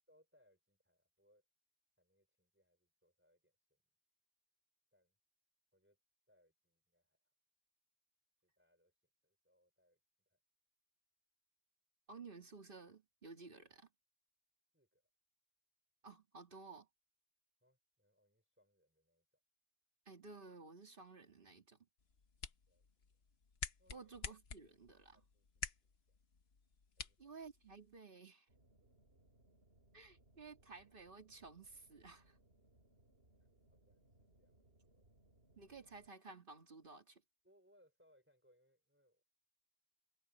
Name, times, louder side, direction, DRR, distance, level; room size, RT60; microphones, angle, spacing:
voice 1, 0.1-1.4 2.0-3.8 4.9-5.1 5.7-6.0 6.3-7.3 8.4-8.9 9.2-10.0 10.2-10.4 14.7-15.1 17.6-19.4 22.7-23.2 23.8-24.1 25.1-26.2 27.0-27.3 32.9-33.0 33.7-35.0 37.4-39.2, equal, 10° right, 5.0 m, -75 dB
voice 2, 12.1-13.9 16.0-16.9 20.1-21.8 23.9-25.2 27.2-28.5 29.9-32.4 35.6-37.2, right 4 dB, 55° right, 2.5 m, -55 dB
sound 1, 22.0-28.0, left 5 dB, 75° left, 1.4 m, -50 dB
sound 2, 28.5-36.1, right 1 dB, 75° right, 4.8 m, -70 dB
omnidirectional pair, 1.1 m